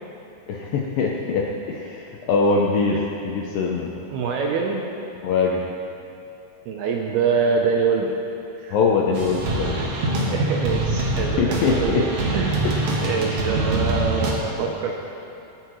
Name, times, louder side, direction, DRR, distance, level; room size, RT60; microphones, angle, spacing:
voice 1, 0.5-1.4 1.7-3.0 3.2-3.9 5.2-5.6 8.7-9.9 11.4-12.0, left 4 dB, 80° left, -1 dB, 2.0 m, -22 dB
voice 2, 4.1-4.9 6.7-8.1 8.6-8.8 9.8-12.7 13.0-14.9, right 5 dB, 75° right, 0 dB, 2.4 m, -25 dB
sound 1, 9.1-14.3, right 2 dB, 60° right, 2.1 m, -24 dB
20.0 x 9.8 x 3.2 m, 2.8 s
omnidirectional pair, 5.1 m